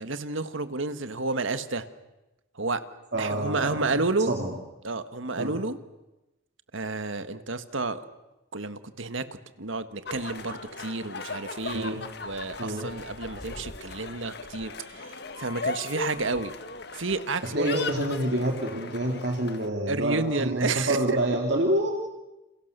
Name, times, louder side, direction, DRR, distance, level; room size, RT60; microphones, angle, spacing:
voice 1, 0.0-1.9 2.6-2.8 3.2-4.3 4.8-5.8 6.7-8.0 8.5-9.3 9.6-16.5 16.9-17.9 19.9-21.2, right 3 dB, 75° right, 11 dB, 1.7 m, -30 dB
voice 2, 3.1-3.8 4.3-4.5 5.4-5.6 11.7-12.0 12.6-12.9 17.5-21.9, right 1 dB, 55° right, 1 dB, 3.0 m, -27 dB
sound 1, 10.1-19.7, left 4 dB, 50° left, 1.6 m, -38 dB
29.5 x 29.0 x 6.8 m, 1.0 s
head